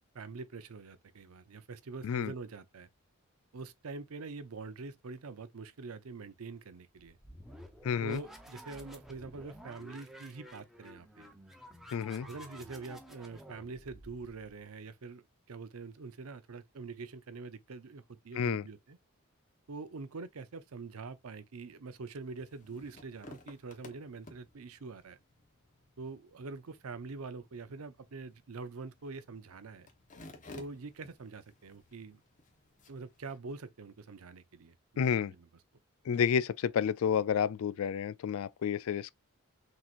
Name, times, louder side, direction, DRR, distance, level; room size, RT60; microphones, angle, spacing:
voice 1, 0.1-2.9 3.5-7.2 8.0-11.3 12.2-15.2 15.5-19.0 19.7-25.2 26.0-29.9 30.5-32.2 32.9-35.4, right 4 dB, 80° right, 0.6 m, -45 dB
sound 1, 7.0-14.6, equal, ahead, 0.7 m, -52 dB
voice 2, 7.8-8.2 11.9-12.3 18.3-18.6 35.0-35.3 36.1-39.1, left 7 dB, 70° left, 0.3 m, -30 dB
sound 2, 22.2-33.4, left 2 dB, 35° left, 1.0 m, -56 dB
6.0 x 2.9 x 2.5 m
head